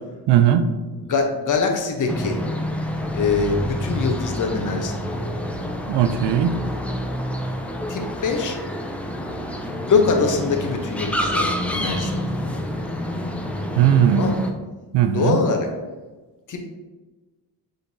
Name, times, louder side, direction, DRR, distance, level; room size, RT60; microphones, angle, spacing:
voice 1, 0.3-0.6 5.9-6.6 13.8-14.4 14.9-15.4, right 10 dB, 70° right, 9 dB, 0.6 m, -18 dB
voice 2, 0.9-2.4 3.1-5.4 7.9-8.6 9.8-12.9 14.1-14.4 15.1-15.7 16.5-16.6, left 4 dB, 45° left, 3 dB, 0.9 m, -24 dB
sound 1, 2.1-14.5, equal, 5° left, 0.3 m, -28 dB
6.6 x 2.8 x 2.7 m, 1.2 s
cardioid pair, 85°, 43 cm